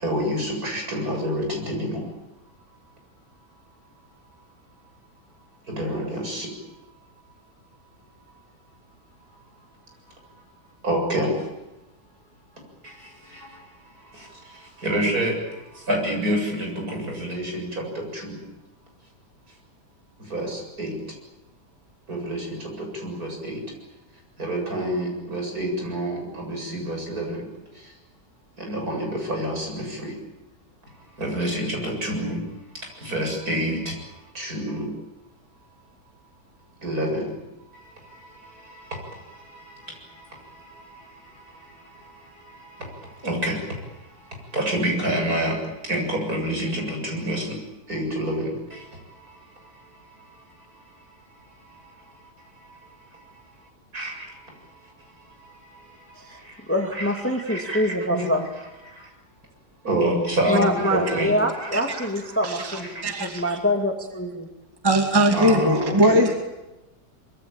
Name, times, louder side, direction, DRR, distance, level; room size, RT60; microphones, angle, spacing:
voice 1, 0.0-2.0 5.7-6.5 10.8-11.3 14.8-15.3 15.9-17.7 18.1-18.3 20.3-20.9 22.1-22.6 23.0-23.6 24.4-27.4 28.7-29.8 31.2-32.4 33.1-33.8 34.4-34.9 36.8-37.2 43.2-43.6 44.5-45.5 45.9-47.4 47.9-48.5 53.9-54.1 56.9-57.1 57.5-58.4 59.8-62.1 62.7-62.9 65.3-66.2, right 1 dB, 55° right, 2 dB, 8.1 m, -27 dB
voice 2, 56.7-58.4 60.5-62.9 63.2-64.5, equal, 5° left, 4 dB, 2.1 m, -25 dB
voice 3, 62.4-63.4 64.8-66.4, right 1 dB, 15° right, 3 dB, 2.4 m, -20 dB
25.0 x 23.5 x 8.9 m, 1.0 s
omnidirectional pair, 1.9 m